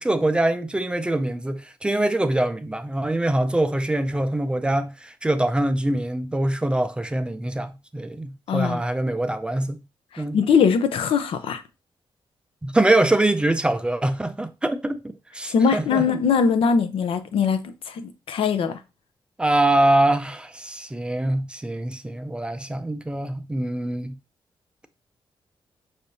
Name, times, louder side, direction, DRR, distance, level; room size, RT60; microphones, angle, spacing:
voice 1, 0.0-9.8 10.2-10.4 12.6-15.0 15.3-16.0 19.4-24.2, right 1 dB, 10° right, 0.3 m, -23 dB
voice 2, 8.5-8.8 10.1-11.6 15.5-18.8, left 6 dB, 85° left, 0.6 m, -21 dB
5.6 x 3.4 x 2.6 m
wide cardioid pair, 165°, 9 cm